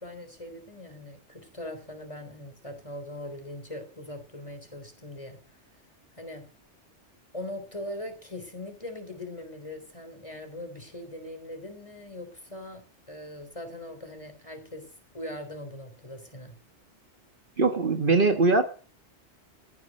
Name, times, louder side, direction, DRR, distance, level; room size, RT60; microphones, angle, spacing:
voice 1, 0.0-5.4 6.1-6.4 7.3-12.8 13.1-14.9 15.1-16.5, left 1 dB, 30° left, 6 dB, 3.7 m, -40 dB
voice 2, 17.6-18.6, right 3 dB, 50° right, 7 dB, 1.5 m, -21 dB
15.5 x 9.7 x 7.6 m, 0.40 s
omnidirectional pair, 1.2 m